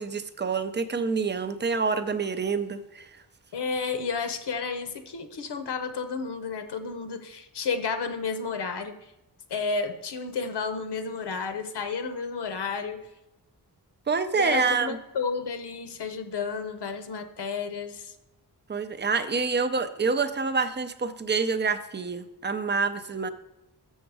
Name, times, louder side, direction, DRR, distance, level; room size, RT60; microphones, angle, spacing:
voice 1, 0.0-3.1 14.1-15.0 18.7-23.3, right 5 dB, 25° right, 11 dB, 0.5 m, -27 dB
voice 2, 3.5-9.0 9.5-13.0 14.3-18.1, left 5 dB, 80° left, 9 dB, 0.8 m, -31 dB
7.0 x 6.3 x 4.7 m, 0.93 s
wide cardioid pair, 135°, 40 cm